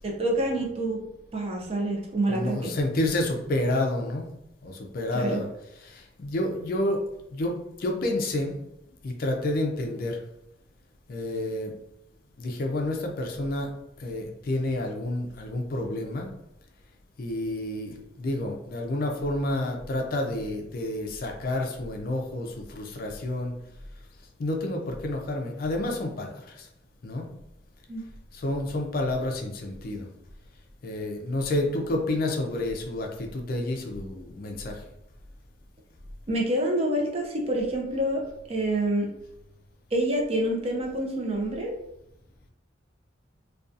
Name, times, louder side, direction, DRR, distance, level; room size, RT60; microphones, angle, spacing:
voice 1, 0.0-1.0 1.3-2.7 5.1-5.4 27.9-28.0 36.3-38.2 38.5-39.1 39.9-41.7, right 1 dB, 30° right, -1 dB, 0.5 m, -27 dB
voice 2, 2.3-4.3 4.6-5.5 5.8-7.0 7.3-8.5 9.0-10.2 11.1-11.7 12.4-13.7 14.0-16.3 17.2-23.5 24.4-26.7 27.0-27.3 28.3-30.1 30.8-34.8, left 1 dB, 50° left, 2 dB, 0.4 m, -29 dB
2.6 x 2.3 x 2.4 m, 0.83 s
head